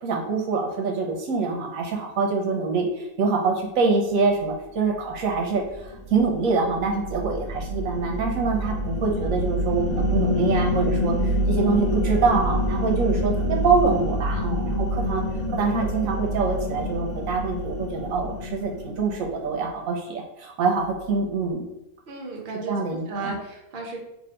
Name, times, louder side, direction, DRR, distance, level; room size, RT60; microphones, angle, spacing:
voice 1, 0.0-15.2 15.5-21.7 22.7-23.4, right 4 dB, 80° right, 1 dB, 1.0 m, -25 dB
sound 1, 5.1-19.6, left 1 dB, 70° left, 1.2 m, -27 dB
voice 2, 22.1-24.0, right 3 dB, 50° right, 0 dB, 0.9 m, -34 dB
2.7 x 2.6 x 4.3 m, 0.89 s
omnidirectional pair, 1.4 m